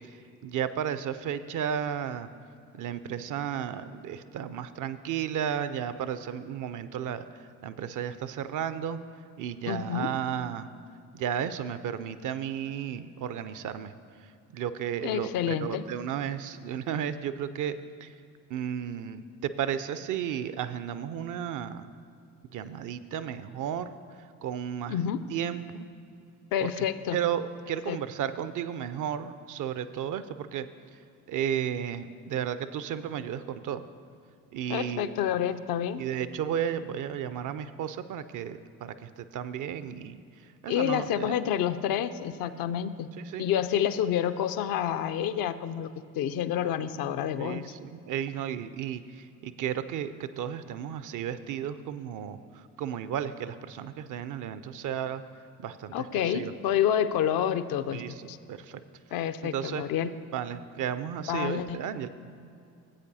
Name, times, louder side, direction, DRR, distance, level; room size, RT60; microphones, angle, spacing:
voice 1, 0.0-2.3 2.7-9.0 9.4-10.7 11.1-13.9 14.2-17.8 18.0-18.1 18.5-21.9 22.5-25.0 25.3-25.9 26.6-26.9 27.1-30.7 30.9-31.0 31.3-33.8 34.5-35.4 36.0-41.4 43.2-43.5 47.4-55.2 55.6-56.5 57.9-58.8 59.5-59.8 60.3-62.1, right 9 dB, 45° right, 13 dB, 0.5 m, -34 dB
voice 2, 9.7-10.1 15.0-15.8 24.9-25.2 26.5-27.2 27.9-28.0 34.7-36.0 40.7-43.1 43.4-47.7 55.9-58.0 58.3-58.4 59.1-60.1 61.3-61.8, left 9 dB, 55° left, 11 dB, 0.5 m, -28 dB
15.5 x 8.2 x 2.7 m, 2.5 s
hypercardioid pair, 45°, 44 cm